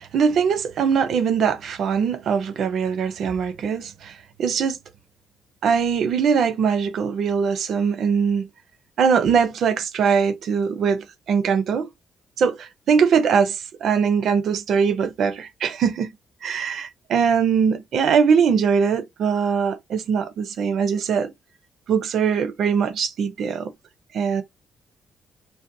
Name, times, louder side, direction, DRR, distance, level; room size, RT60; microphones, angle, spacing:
voice 1, 0.0-4.8 5.6-8.5 9.0-11.9 12.4-16.1 16.4-21.3 21.9-23.7 24.1-24.4, right 6 dB, 65° right, 0.4 m, -21 dB
2.6 x 2.1 x 2.5 m
cardioid pair, 90°, 0 cm